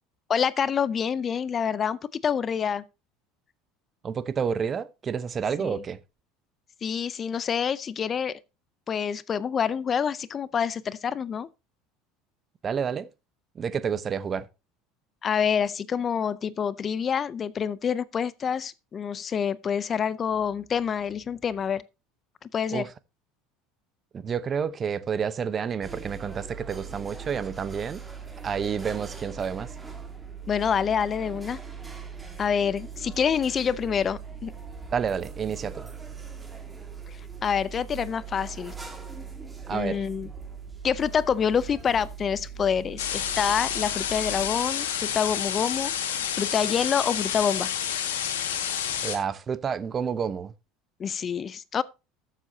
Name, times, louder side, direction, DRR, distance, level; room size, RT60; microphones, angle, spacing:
voice 1, 0.3-2.8 5.6-5.8 6.8-8.4 8.9-11.5 15.2-21.8 22.5-22.9 30.5-31.6 32.4-34.5 37.4-38.7 39.7-40.3 40.8-45.9 46.3-47.7 51.0-51.8, left 7 dB, 35° left, 0.5 m, -27 dB
voice 2, 4.0-6.0 12.6-13.1 13.5-14.5 22.7-22.9 24.1-28.0 28.4-29.7 34.9-35.9 39.7-40.1 49.0-50.5, right 7 dB, 35° right, 0.8 m, -29 dB
sound 1, 25.8-44.6, right 6 dB, 15° right, 2.0 m, -41 dB
sound 2, 43.0-49.2, left 9 dB, 85° left, 1.7 m, -29 dB
13.5 x 7.5 x 2.7 m
hypercardioid pair, 85°, 0 cm